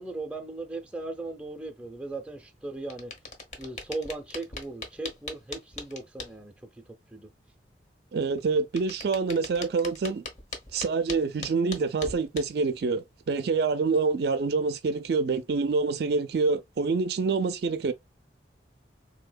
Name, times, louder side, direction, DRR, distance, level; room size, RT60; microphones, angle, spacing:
voice 1, 0.0-3.1 3.6-6.5 7.1-7.3, right 2 dB, 5° right, 0.5 m, -37 dB
sound 1, 2.9-6.3 8.4-12.6, left 3 dB, 40° left, 0.7 m, -39 dB
voice 2, 8.1-10.2 10.7-17.9, right 4 dB, 60° right, 0.4 m, -26 dB
3.6 x 2.7 x 2.2 m
head